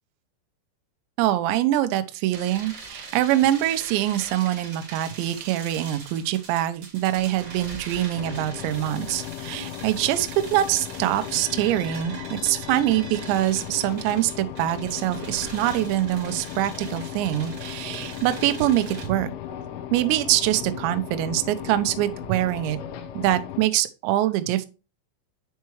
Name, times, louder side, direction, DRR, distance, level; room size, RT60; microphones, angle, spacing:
voice 1, 1.2-19.3 19.9-22.8 23.1-24.7, right 14 dB, 85° right, 9 dB, 2.6 m, -24 dB
sound 1, 2.3-19.1, right 4 dB, 50° right, 1.7 m, -42 dB
sound 2, 8.1-23.7, left 13 dB, 85° left, 2.9 m, -37 dB
sound 3, 16.7-23.1, left 1 dB, 40° left, 1.3 m, -44 dB
9.4 x 4.6 x 3.1 m, 0.30 s
omnidirectional pair, 5.9 m